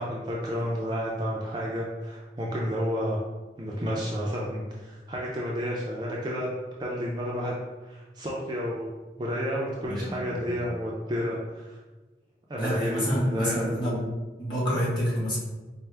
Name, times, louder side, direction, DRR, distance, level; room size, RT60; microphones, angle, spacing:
voice 1, 0.0-3.2 3.6-6.5 6.8-7.5 7.8-8.9 9.2-11.8 12.5-14.1, equal, 25° right, -4 dB, 0.4 m, -31 dB
voice 2, 9.8-10.7 12.6-14.0 14.4-15.4, equal, 25° left, -8 dB, 1.4 m, -28 dB
4.5 x 2.0 x 3.2 m, 1.2 s
head